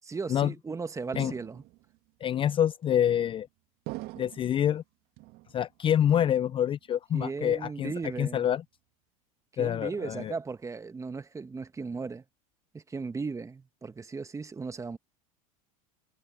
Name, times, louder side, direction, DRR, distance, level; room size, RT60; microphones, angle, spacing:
voice 1, 0.1-1.6 7.1-8.5 9.6-12.2 12.7-15.0, right 4 dB, 15° right, 1.6 m, -36 dB
sound 1, 1.1-2.0 2.8-3.3 3.9-4.7 5.2-5.8 6.1-6.9 7.2-7.6 8.0-8.6, right 21 dB, 55° right, 2.1 m, -45 dB
voice 2, 2.2-3.5 4.2-4.8 5.5-7.9 8.2-8.6 9.6-10.3, left 10 dB, 30° left, 0.5 m, -26 dB
hypercardioid pair, 100°, 19 cm